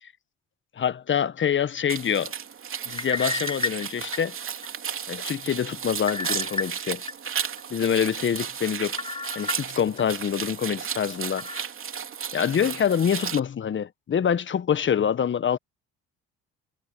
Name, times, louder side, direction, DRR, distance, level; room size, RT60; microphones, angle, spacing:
voice 1, 0.8-2.3 2.8-4.3 5.1-7.0 7.7-9.0 9.3-11.5 12.3-15.6, left 8 dB, 40° left, 1.5 m, -25 dB
sound 1, 1.9-13.4, right 7 dB, 45° right, 3.1 m, -34 dB
sound 2, 2.9-4.7 5.1-5.2 6.1-7.1 7.6-7.7 9.0-10.0 10.5-10.6 11.4-11.6, left 3 dB, 15° left, 1.4 m, -32 dB
hypercardioid pair, 65°, 30 cm